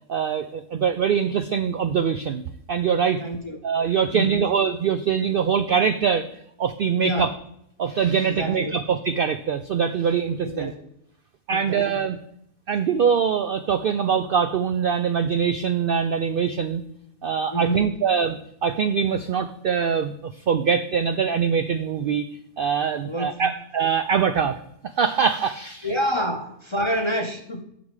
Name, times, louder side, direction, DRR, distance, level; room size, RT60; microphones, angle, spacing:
voice 1, 0.1-2.4 2.7-3.2 3.6-6.2 6.6-7.3 7.8-10.7 11.5-12.2 12.7-16.8 17.2-22.3 22.6-24.6 25.0-25.9, right 7 dB, 75° right, 10 dB, 0.5 m, -23 dB
voice 2, 3.2-3.6 4.1-4.5 7.0-7.4 8.2-8.8 10.4-10.8 11.5-12.0 17.5-18.0 23.0-23.5 25.8-27.6, equal, 30° left, 4 dB, 0.5 m, -28 dB
8.9 x 6.0 x 4.7 m, 0.72 s
omnidirectional pair, 1.4 m